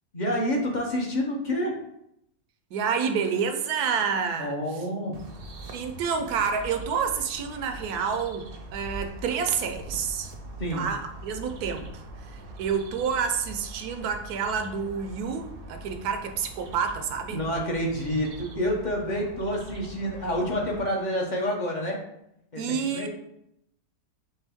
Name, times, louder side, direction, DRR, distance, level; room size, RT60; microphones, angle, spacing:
voice 1, 0.1-1.7 4.4-5.1 10.6-10.8 17.3-22.0 22.5-23.1, equal, 40° left, 0 dB, 0.7 m, -28 dB
voice 2, 2.7-4.8 5.7-10.3 10.7-17.4 22.6-23.1, right 6 dB, 80° right, 6 dB, 1.1 m, -29 dB
sound 1, 5.1-20.8, right 1 dB, 50° right, 0.7 m, -42 dB
4.4 x 3.3 x 3.5 m, 0.78 s
omnidirectional pair, 1.6 m